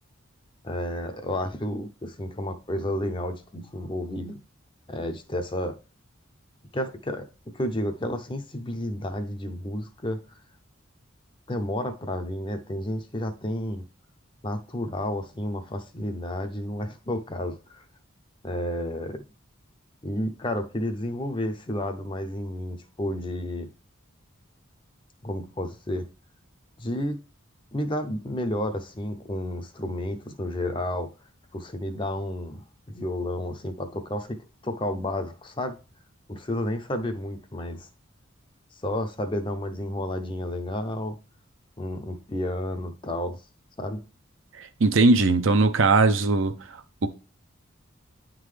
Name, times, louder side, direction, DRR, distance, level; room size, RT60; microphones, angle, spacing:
voice 1, 0.6-4.4 4.9-5.8 6.7-7.3 7.5-10.2 11.5-13.9 14.4-17.8 18.4-19.2 20.0-23.7 25.2-26.1 26.8-27.2 27.7-31.1 31.5-35.8 36.3-37.9 38.8-41.2 41.8-43.4 43.8-44.0, left 1 dB, 25° left, 0.6 m, -31 dB
voice 2, 44.6-46.5 47.0-47.1, right 3 dB, 70° right, 0.7 m, -19 dB
10.0 x 3.8 x 3.2 m
head